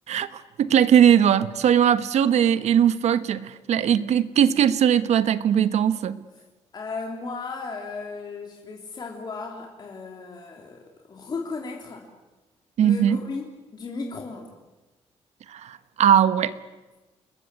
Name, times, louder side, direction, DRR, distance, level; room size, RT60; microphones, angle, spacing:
voice 1, 0.1-6.2 12.8-13.2 15.5-16.5, right 9 dB, 70° right, 13 dB, 1.3 m, -20 dB
voice 2, 6.7-10.8 11.1-12.1 12.8-13.5 13.7-14.5, left 4 dB, 35° left, 0 dB, 3.3 m, -35 dB
29.5 x 21.5 x 8.3 m, 1.1 s
cardioid pair, 130°, 12 cm